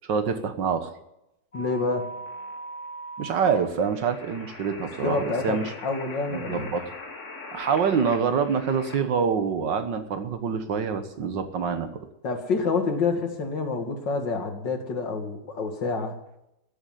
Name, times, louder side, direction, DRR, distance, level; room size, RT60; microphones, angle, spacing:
voice 1, 0.1-0.9 3.2-5.7 6.3-6.9 7.5-12.1, right 6 dB, 85° right, 9 dB, 2.0 m, -26 dB
voice 2, 1.5-2.1 5.0-6.7 12.2-16.2, left 4 dB, 85° left, 5 dB, 2.7 m, -28 dB
sound 1, 1.5-9.0, left 1 dB, 45° left, 1.9 m, -40 dB
16.0 x 8.0 x 9.4 m, 0.85 s
omnidirectional pair, 1.9 m